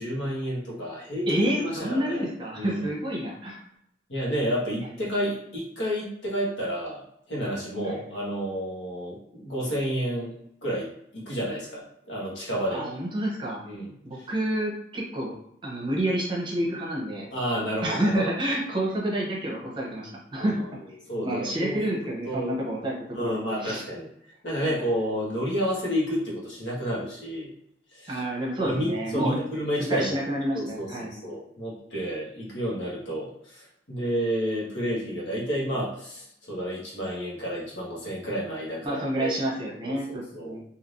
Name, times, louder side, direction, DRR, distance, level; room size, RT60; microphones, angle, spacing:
voice 1, 0.0-2.3 2.5-2.9 4.1-7.0 7.3-12.9 13.6-14.3 17.3-18.3 20.4-20.6 21.1-21.8 22.2-22.6 23.1-24.1 24.4-27.5 27.9-28.2 28.6-30.2 30.5-39.4 39.8-40.6, equal, 90° left, -5 dB, 1.3 m, -30 dB
voice 2, 1.3-3.6 7.8-8.0 12.7-13.6 14.0-15.4 15.6-17.3 17.8-20.6 21.2-23.8 24.6-24.7 28.1-29.4 29.9-31.3 38.8-40.6, right 1 dB, 25° right, -3 dB, 0.8 m, -29 dB
3.2 x 2.8 x 2.6 m, 0.72 s
head